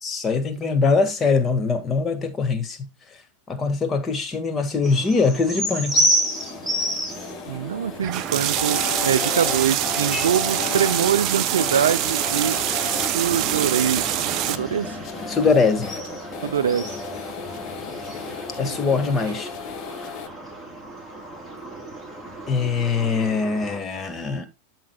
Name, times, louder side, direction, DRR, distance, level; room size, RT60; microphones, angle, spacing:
voice 1, 0.0-2.9 3.5-6.1 15.3-16.0 18.6-19.5 22.5-24.5, left 4 dB, 20° left, 1.6 m, -22 dB
sound 1, 4.8-23.8, right 1 dB, ahead, 3.5 m, -31 dB
sound 2, 5.9-20.3, left 9 dB, 40° left, 1.1 m, -36 dB
voice 2, 7.5-12.6 13.1-14.1 14.5-15.0 16.4-16.9 18.6-18.8 19.0-19.2, right 8 dB, 65° right, 0.4 m, -24 dB
sound 3, 8.0-14.6, right 11 dB, 35° right, 0.7 m, -25 dB
13.0 x 6.3 x 2.2 m
figure-of-eight pair, 90°, 0 cm